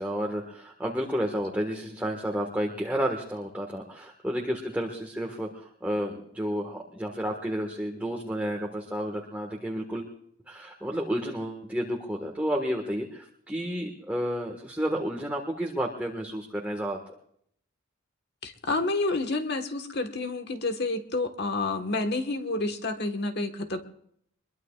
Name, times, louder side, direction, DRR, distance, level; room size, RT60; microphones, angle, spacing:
voice 1, 0.0-10.1 10.5-17.0, equal, 5° right, 0 dB, 1.6 m, -31 dB
voice 2, 18.4-23.8, left 2 dB, 50° left, 6 dB, 1.5 m, -29 dB
24.0 x 22.0 x 2.4 m, 0.69 s
head